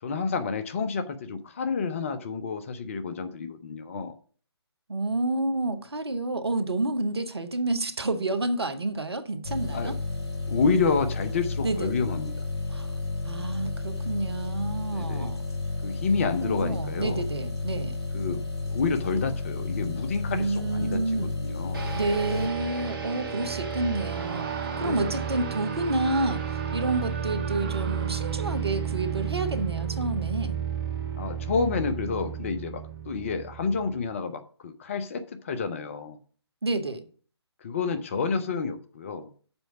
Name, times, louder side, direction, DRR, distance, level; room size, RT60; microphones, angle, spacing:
voice 1, 0.0-4.1 9.7-9.9 10.5-12.4 14.9-15.3 15.8-17.2 18.1-21.9 24.8-25.2 31.2-36.2 37.6-39.3, left 5 dB, 30° left, 0.7 m, -29 dB
voice 2, 4.9-10.0 11.6-12.0 12.7-12.9 13.2-15.4 16.4-18.0 20.3-21.3 21.9-24.5 24.8-26.4 26.7-30.6 36.6-37.1, right 2 dB, 65° right, 1.1 m, -29 dB
sound 1, 9.4-22.5, left 3 dB, 70° left, 3.0 m, -32 dB
sound 2, 21.7-33.9, right 7 dB, 50° right, 1.9 m, -32 dB
Screaming, 23.9-28.8, right 7 dB, 25° right, 0.3 m, -41 dB
7.0 x 4.5 x 6.9 m
figure-of-eight pair, 140°, 14 cm